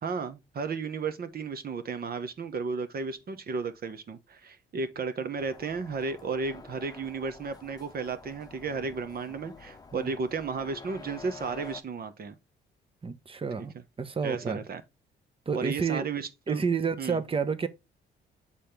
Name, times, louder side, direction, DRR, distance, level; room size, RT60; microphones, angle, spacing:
voice 1, 0.0-12.4 13.6-13.7 14.2-14.8 15.5-16.7 17.0-17.2, right 5 dB, 50° right, 1.2 m, -34 dB
sound 1, 5.4-11.8, left 4 dB, 20° left, 1.0 m, -48 dB
voice 2, 13.0-14.6 15.5-16.1 16.5-17.7, right 5 dB, 30° right, 1.0 m, -30 dB
7.3 x 4.3 x 3.4 m
cardioid pair, 90°, 20 cm